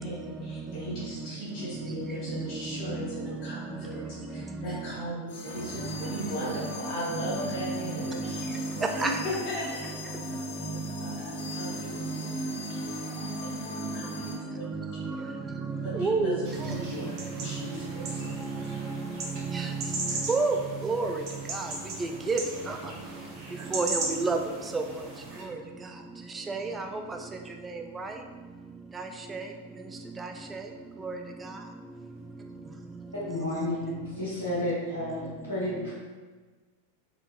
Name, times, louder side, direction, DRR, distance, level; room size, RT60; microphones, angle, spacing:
voice 1, 0.0-4.1 4.3-8.4 8.7-14.0 14.4-14.6 14.9-15.1 15.9-18.7, equal, 35° left, -9 dB, 1.0 m, -38 dB
voice 2, 2.0-4.1 4.5-4.9 6.0-6.2 7.1-9.3 10.3-11.2 11.7-11.8 12.0-12.9 13.2-13.4 13.7-14.3 14.7-15.3 15.7-16.8 17.5-17.6 18.1-18.3 18.7-19.0 19.4-20.6 20.8-21.2 21.5-21.7 22.0-22.4 22.7-22.8 23.7-24.4 24.7-24.8 26.3-27.0 27.6-28.1 29.0-29.5 30.2-30.6 31.0-31.2, right 3 dB, 15° right, 4 dB, 0.3 m, -32 dB
sound 1, 5.3-14.3, left 3 dB, 60° left, 0.7 m, -41 dB
sound 2, 16.4-25.4, right 2 dB, 40° right, 0.7 m, -38 dB
voice 3, 33.1-35.9, left 1 dB, 85° left, -13 dB, 1.0 m, -31 dB
3.1 x 3.1 x 2.3 m, 1.4 s
figure-of-eight pair, 90°, 0 cm